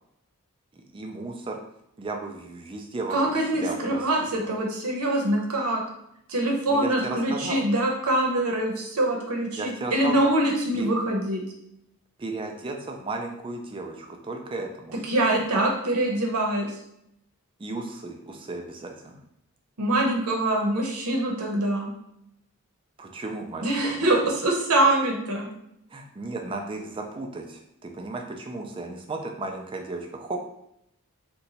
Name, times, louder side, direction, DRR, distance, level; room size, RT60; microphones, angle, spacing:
voice 1, 0.7-1.6 2.0-4.1 4.3-4.5 6.7-7.6 9.6-10.3 10.8-10.9 12.2-15.0 17.6-19.2 23.0-24.1 25.9-30.4, right 2 dB, 25° right, 3 dB, 0.3 m, -35 dB
voice 2, 3.1-5.8 6.3-11.4 15.0-16.7 19.8-21.9 23.6-25.5, right 1 dB, 85° right, 0 dB, 0.8 m, -24 dB
2.8 x 2.2 x 4.0 m, 0.78 s
head